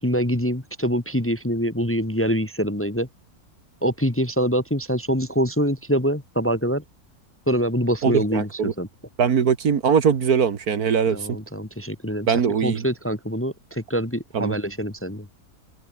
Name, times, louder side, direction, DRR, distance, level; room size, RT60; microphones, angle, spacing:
voice 1, 0.0-3.1 3.8-6.8 7.5-8.9 11.1-12.3 12.6-15.3, equal, 10° left, 1.3 m, -24 dB
voice 2, 8.0-8.7 9.2-11.3 12.3-12.9 14.3-14.5, right 7 dB, 65° right, 1.9 m, -21 dB
omnidirectional pair, 1.7 m